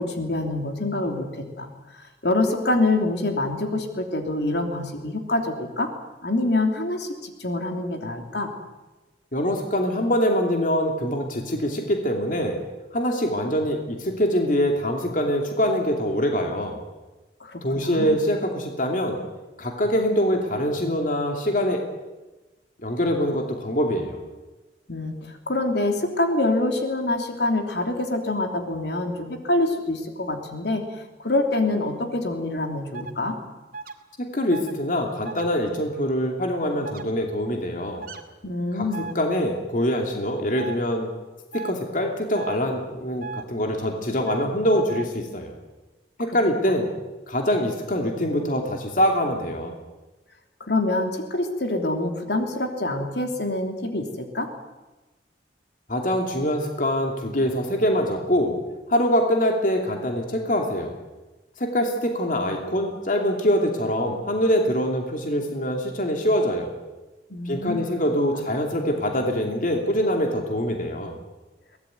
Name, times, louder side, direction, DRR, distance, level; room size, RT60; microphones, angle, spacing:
voice 1, 0.0-5.9 6.2-8.5 17.4-18.2 24.9-33.4 38.4-39.1 50.6-54.5 67.3-67.8 68.3-68.4, left 2 dB, 65° left, 4 dB, 3.1 m, -26 dB
voice 2, 9.3-12.6 12.9-16.8 17.6-19.2 19.6-21.8 22.8-24.2 34.2-38.1 38.7-38.9 39.1-41.1 41.5-45.5 46.2-46.9 47.3-49.7 55.9-58.6 58.9-60.9 61.6-66.7 67.5-71.2, equal, 45° left, 2 dB, 2.8 m, -24 dB
sound 1, 32.9-33.1 33.7-33.9 34.5-34.7 35.2-35.5 36.8-37.0 38.0-38.2 38.9-39.1 40.6-40.8 41.5-41.7 42.3-42.6 43.2-43.4 44.3-44.4 44.9-45.0, right 4 dB, 50° right, 2.2 m, -35 dB
23.0 x 18.5 x 9.3 m, 1.1 s
head